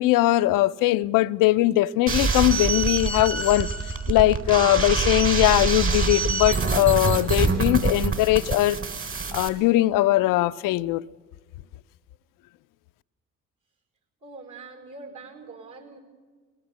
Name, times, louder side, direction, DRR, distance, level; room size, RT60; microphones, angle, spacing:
voice 1, 0.0-3.7 4.1-8.8 9.3-11.0, left 16 dB, 65° left, 0.5 m, -20 dB
sound 1, 2.1-9.5, right 4 dB, 40° right, 3.6 m, -25 dB
voice 2, 14.2-16.0, right 3 dB, 55° right, 4.9 m, -43 dB
21.0 x 18.0 x 7.3 m
hypercardioid pair, 50°, 35 cm